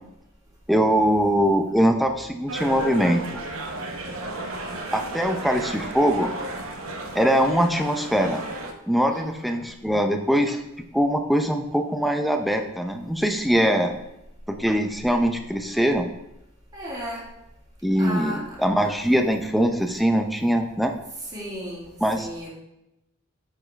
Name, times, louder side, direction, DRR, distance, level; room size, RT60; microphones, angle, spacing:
voice 1, 0.7-3.4 4.9-6.3 7.1-8.4 8.9-10.6 10.9-14.0 14.6-16.0 17.8-20.9 22.0-22.3, equal, ahead, 5 dB, 0.5 m, -22 dB
sound 1, 2.5-8.7, right 2 dB, 85° right, 0.8 m, -34 dB
voice 2, 9.1-9.7 16.7-17.3 18.0-18.9 21.2-22.5, equal, 20° right, -6 dB, 2.2 m, -36 dB
8.6 x 4.6 x 3.3 m, 0.87 s
head